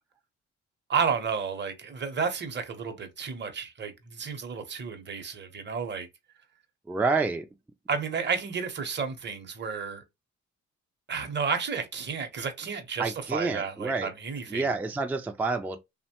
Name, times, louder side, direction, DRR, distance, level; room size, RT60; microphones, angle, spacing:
voice 1, 0.9-6.1 7.9-10.0 11.1-14.7, right 5 dB, 35° right, 0.8 m, -31 dB
voice 2, 6.9-7.5 13.0-14.1 14.5-15.8, right 3 dB, 5° right, 0.3 m, -28 dB
2.9 x 2.1 x 2.8 m
cardioid pair, 90°, 30 cm